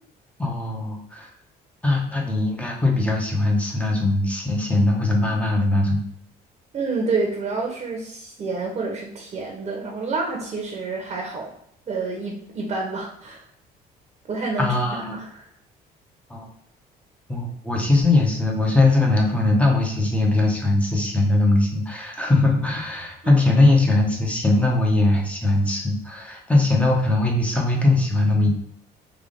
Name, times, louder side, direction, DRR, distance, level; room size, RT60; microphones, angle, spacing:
voice 1, 0.4-1.3 1.8-6.0 14.6-15.2 16.3-16.5 17.3-28.5, left 2 dB, 5° left, 0 dB, 0.9 m, -20 dB
voice 2, 6.7-11.5 11.9-13.4 14.3-15.5 23.2-23.3, right 3 dB, 40° right, 0 dB, 0.9 m, -28 dB
3.5 x 2.5 x 3.8 m, 0.71 s
cardioid pair, 110°, 17 cm